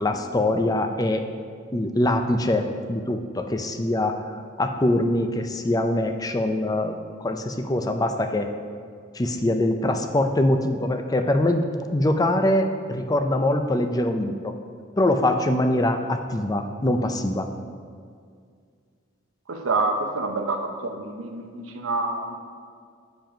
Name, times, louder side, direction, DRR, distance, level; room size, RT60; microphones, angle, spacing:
voice 1, 0.0-1.2 1.7-4.2 4.6-6.9 7.2-8.5 9.1-11.6 11.9-14.5 15.0-17.5, left 1 dB, 20° left, 6 dB, 0.5 m, -23 dB
voice 2, 19.5-22.4, right 3 dB, 90° right, 4 dB, 0.9 m, -27 dB
8.9 x 5.2 x 5.0 m, 2.1 s
head